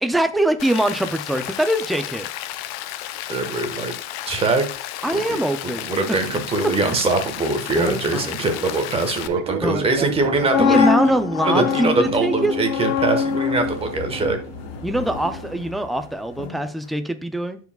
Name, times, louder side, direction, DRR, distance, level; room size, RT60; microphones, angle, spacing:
voice 1, 0.0-2.3 5.0-5.8 6.1-6.2 6.6-6.7 7.8-8.3 9.6-9.9 10.6-12.5 14.8-17.6, right 1 dB, ahead, 8 dB, 0.3 m, -23 dB
Rain, 0.6-9.3, left 13 dB, 55° left, 0.6 m, -33 dB
voice 2, 3.3-3.9 4.2-4.6 5.1-5.4 5.6-10.9 11.4-14.4, right 3 dB, 20° right, 6 dB, 1.2 m, -22 dB
Fixed-wing aircraft airplane, 9.2-15.6, right 10 dB, 80° right, 0.7 m, -34 dB
sound 1, 10.1-16.1 16.4-16.6, left 7 dB, 80° left, 1.1 m, -24 dB
13.0 x 4.7 x 2.3 m, 0.39 s
supercardioid pair, 145°, 32 cm